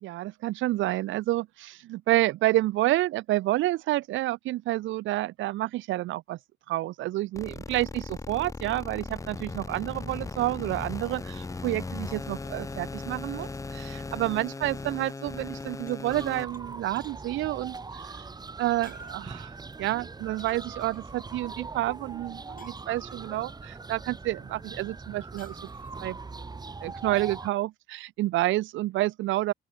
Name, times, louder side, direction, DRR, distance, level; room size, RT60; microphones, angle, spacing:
voice 1, 0.0-6.4 6.7-18.2 18.6-19.5 19.8-25.7 26.0-26.2 26.8-29.5, right 16 dB, 75° right, 0.4 m, -29 dB
sound 1, 7.4-16.4, left 3 dB, 15° left, 0.6 m, -38 dB
sound 2, 13.0-15.3 15.6-16.6 17.0-17.3 18.5-18.6 18.8-19.4 20.4-21.2 22.6-23.4 25.4-26.1, left 6 dB, 45° left, 7.9 m, -60 dB
sound 3, 16.1-27.5, right 4 dB, 20° right, 0.9 m, -41 dB
open air
cardioid pair, 90°, 20 cm